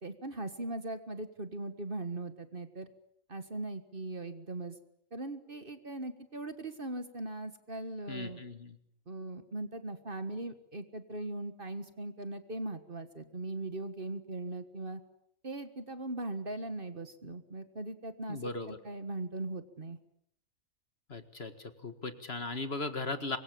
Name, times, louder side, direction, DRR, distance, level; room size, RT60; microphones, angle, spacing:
voice 1, 0.0-2.9 3.3-4.7 5.1-8.4 9.1-15.0 15.4-18.4 18.7-20.0, right 2 dB, 40° right, 10 dB, 1.8 m, -39 dB
voice 2, 8.1-8.8 18.3-18.8 21.1-23.4, left 3 dB, 45° left, 9 dB, 2.1 m, -38 dB
25.5 x 23.0 x 8.7 m, 0.73 s
omnidirectional pair, 1.5 m